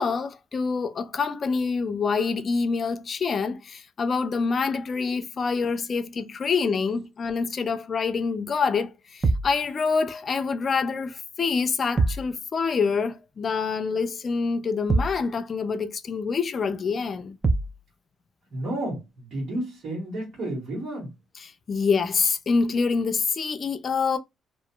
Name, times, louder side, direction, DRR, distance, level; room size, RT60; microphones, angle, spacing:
voice 1, 0.0-17.4 21.4-24.2, left 5 dB, 45° left, 0.4 m, -26 dB
sound 1, 9.2-9.6 12.0-12.3 14.9-15.3 17.4-17.8, right 3 dB, 30° right, 0.4 m, -23 dB
voice 2, 18.5-21.1, right 1 dB, 60° right, 1.4 m, -31 dB
2.7 x 2.5 x 2.2 m
cardioid pair, 90°, 0 cm